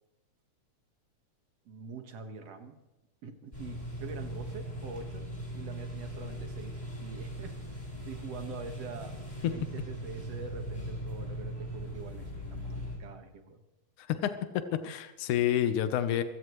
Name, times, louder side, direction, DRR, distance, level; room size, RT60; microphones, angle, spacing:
voice 1, 1.7-2.8 3.2-9.2 9.4-13.6, right 4 dB, 60° right, 6 dB, 2.6 m, -45 dB
sound 1, 3.5-13.0, equal, 15° left, 5.8 m, -39 dB
voice 2, 14.0-16.2, left 11 dB, 80° left, 10 dB, 2.5 m, -29 dB
25.0 x 16.0 x 3.2 m, 1.0 s
omnidirectional pair, 3.4 m